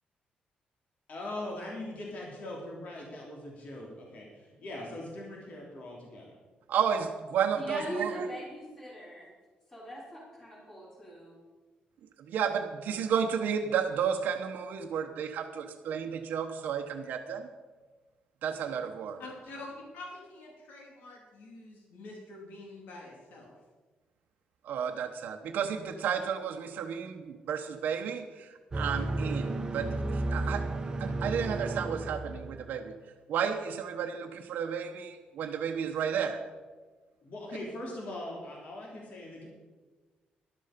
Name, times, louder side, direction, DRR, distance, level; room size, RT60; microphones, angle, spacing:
voice 1, 1.1-6.3 37.2-39.5, left 1 dB, 55° left, -2 dB, 3.2 m, -41 dB
voice 2, 6.7-8.3 12.3-17.4 18.4-19.2 24.6-28.2 28.7-29.9 30.3-30.6 31.0-32.9 33.3-36.4, right 7 dB, 75° right, 4 dB, 0.9 m, -32 dB
voice 3, 7.5-9.3 9.7-11.4, equal, 15° left, -5 dB, 4.3 m, -40 dB
voice 4, 19.2-23.5, left 2 dB, 80° left, -1 dB, 3.0 m, -46 dB
sound 1, 28.7-32.8, right 2 dB, 25° right, 1.0 m, -33 dB
12.5 x 12.0 x 5.1 m, 1.3 s
cardioid pair, 145°, 3 cm